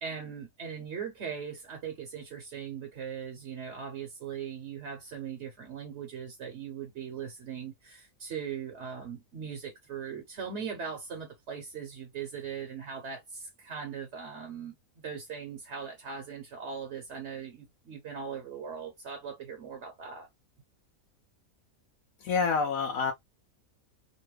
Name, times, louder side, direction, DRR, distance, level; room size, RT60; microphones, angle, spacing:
voice 1, 0.0-20.3, right 7 dB, 55° right, 1.1 m, -40 dB
voice 2, 22.2-23.1, left 5 dB, 80° left, 1.1 m, -27 dB
3.1 x 2.2 x 3.2 m
omnidirectional pair, 1.5 m